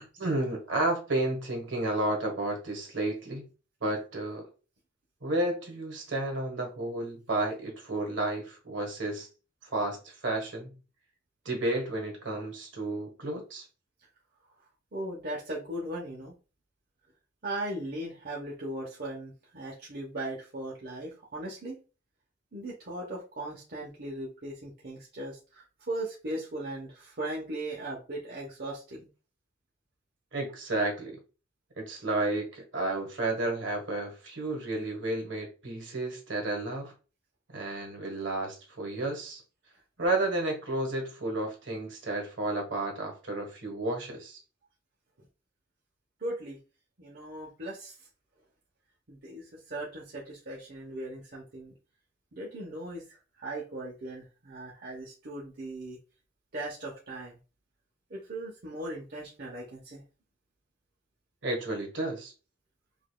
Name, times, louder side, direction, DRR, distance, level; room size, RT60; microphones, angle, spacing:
voice 1, 0.0-3.5 3.8-4.5 5.2-9.3 9.6-10.7 11.4-13.6 30.3-31.2 31.8-36.9 37.5-39.4 40.0-44.4 61.4-62.3, right 2 dB, 75° right, 1.5 m, -32 dB
voice 2, 14.6-16.3 17.4-21.8 22.5-29.1 46.2-46.6 47.0-48.1 49.1-51.8 52.3-56.0 56.5-57.4 58.1-60.0, right 1 dB, 55° right, 1.0 m, -38 dB
5.0 x 2.7 x 2.3 m
head